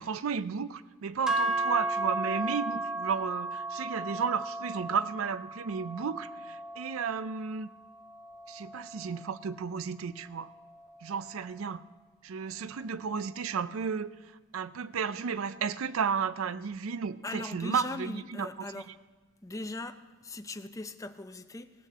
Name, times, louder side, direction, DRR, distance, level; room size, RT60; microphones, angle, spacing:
voice 1, 0.0-7.7 8.5-10.5 11.0-11.8 12.2-14.1 14.5-18.5, right 6 dB, 70° right, 15 dB, 0.4 m, -33 dB
sound 1, 1.3-9.5, right 2 dB, 5° right, 1.0 m, -35 dB
voice 2, 17.2-18.9 19.4-21.7, left 2 dB, 15° left, 8 dB, 0.6 m, -39 dB
17.0 x 6.5 x 7.4 m, 1.3 s
head